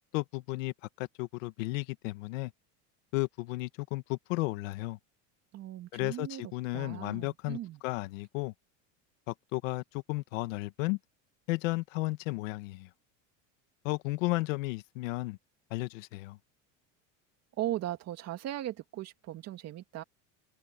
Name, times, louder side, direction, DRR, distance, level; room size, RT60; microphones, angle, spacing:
voice 1, 0.1-2.5 3.1-5.0 5.9-8.5 9.3-9.8 10.1-11.0 11.5-12.9 13.8-15.4 15.7-16.4, left 21 dB, 80° left, 1.5 m, -34 dB
voice 2, 5.5-7.8 17.6-20.0, right 13 dB, 40° right, 2.3 m, -38 dB
supercardioid pair, 140°, 38 cm